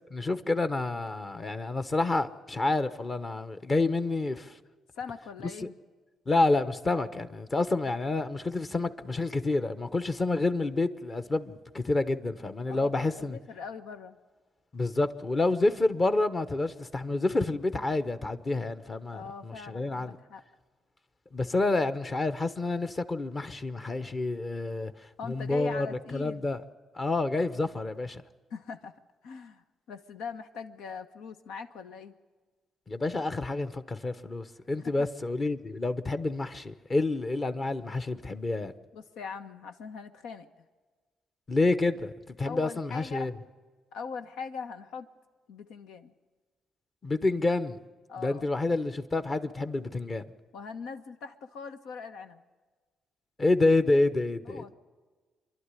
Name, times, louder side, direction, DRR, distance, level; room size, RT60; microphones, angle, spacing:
voice 1, 0.1-4.6 5.6-5.7 6.3-13.4 14.7-20.2 21.3-24.9 25.2-25.9 26.1-26.6 26.9-28.2 32.9-38.7 41.5-42.1 42.4-43.3 47.0-47.8 48.2-50.2 53.4-54.7, left 2 dB, 30° left, 1.0 m, -28 dB
voice 2, 4.9-5.7 12.7-14.2 19.1-20.4 25.2-26.4 28.5-28.9 29.2-32.1 34.8-35.1 38.9-40.6 42.4-43.3 43.9-45.1 45.5-46.1 48.1-48.5 50.5-52.4 54.4-54.7, left 5 dB, 90° left, 1.2 m, -41 dB
26.5 x 11.5 x 9.9 m
cardioid pair, 90°, 0 cm